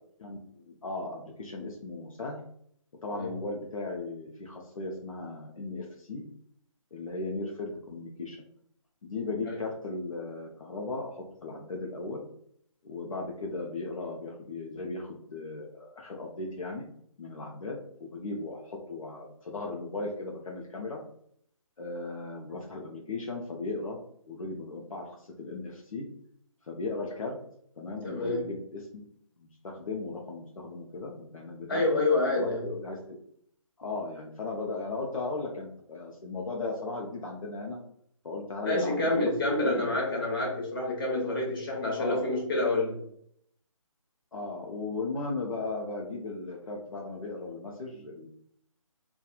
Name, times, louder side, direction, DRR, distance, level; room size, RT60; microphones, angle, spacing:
voice 1, 0.2-2.4 3.0-6.3 6.9-8.4 9.0-12.2 12.8-16.8 17.2-21.0 21.8-24.0 24.3-26.1 26.7-27.4 27.8-29.0 29.4-32.0 32.4-33.3 33.8-37.8 38.2-40.0 42.0-42.2 44.3-48.3, left 3 dB, 70° left, -1 dB, 0.6 m, -37 dB
voice 2, 28.0-28.4 31.7-32.7 38.6-43.0, left 2 dB, 40° left, -2 dB, 0.9 m, -28 dB
2.8 x 2.3 x 2.3 m, 0.67 s
figure-of-eight pair, 155°, 18 cm